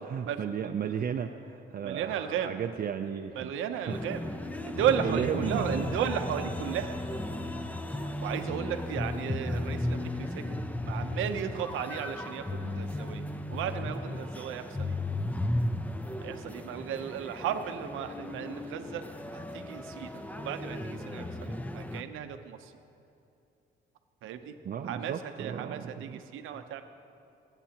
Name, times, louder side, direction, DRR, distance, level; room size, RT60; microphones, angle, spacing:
voice 1, 0.0-3.5 3.8-4.0 5.0-6.0 24.6-26.2, right 8 dB, 50° right, 5 dB, 0.5 m, -34 dB
voice 2, 1.8-2.6 3.3-4.2 4.7-6.9 8.2-10.4 10.8-14.9 16.2-19.0 19.3-22.7 24.2-24.5 24.9-26.8, right 9 dB, 85° right, 8 dB, 0.8 m, -34 dB
sound 1, 3.9-22.0, left 1 dB, 5° left, 0.6 m, -35 dB
22.5 x 9.0 x 2.9 m, 2.7 s
cardioid pair, 90°, 20 cm